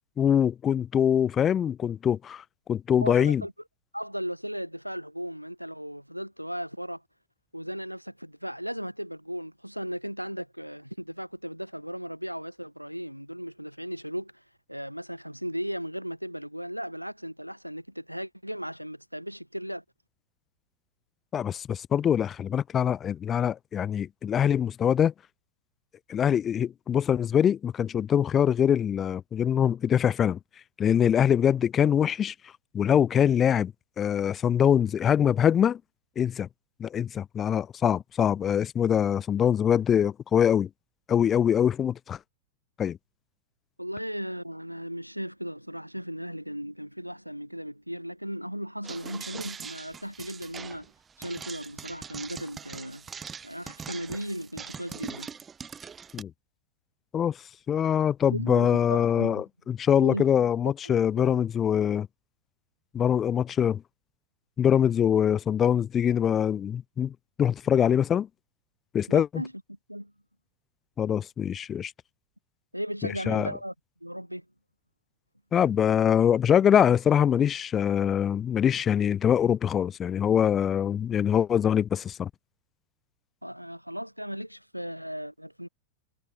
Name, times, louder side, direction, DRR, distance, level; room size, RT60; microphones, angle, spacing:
voice 1, 0.2-2.4 2.7-3.4 21.3-25.1 26.1-30.4 30.8-32.3 32.7-33.7 34.0-35.8 36.2-36.5 36.8-40.7 41.1-42.2 42.8-43.0 56.1-56.3 57.1-57.4 57.7-62.1 62.9-63.8 64.6-67.1 67.4-68.3 68.9-69.4 71.0-71.9 73.3-73.5 75.5-82.3, left 9 dB, 25° left, 0.5 m, -23 dB
voice 2, 3.0-3.5 3.9-7.0 7.5-14.4 14.7-19.8 43.8-50.9 51.2-53.1 53.4-55.3 58.3-59.4 60.0-60.3 60.6-61.0 61.3-61.4 69.1-69.5 69.9-70.1 72.7-73.7 74.0-74.4 83.4-85.7, equal, 90° right, 6.2 m, -36 dB
sound 1, 48.8-56.2, right 6 dB, 20° right, 2.1 m, -42 dB
figure-of-eight pair, 90°, 0 cm